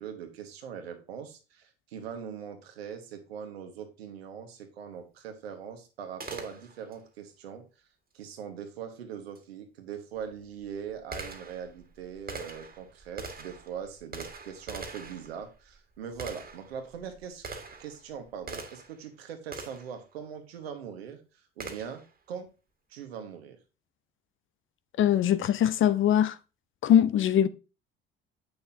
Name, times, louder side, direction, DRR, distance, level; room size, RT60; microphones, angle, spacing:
voice 1, 0.0-7.6 8.1-17.4 17.8-21.2 21.6-22.0 22.3-22.5 22.9-23.6, right 7 dB, 80° right, 1.4 m, -41 dB
Gunshot gunfire, 6.2-7.0 9.3-9.4 10.2-19.0 19.5-20.0 21.6-22.1, right 3 dB, 30° right, 1.9 m, -43 dB
voice 2, 25.0-26.4 26.8-27.5, left 10 dB, 40° left, 0.7 m, -22 dB
8.3 x 6.3 x 2.8 m
hypercardioid pair, 60°, 30 cm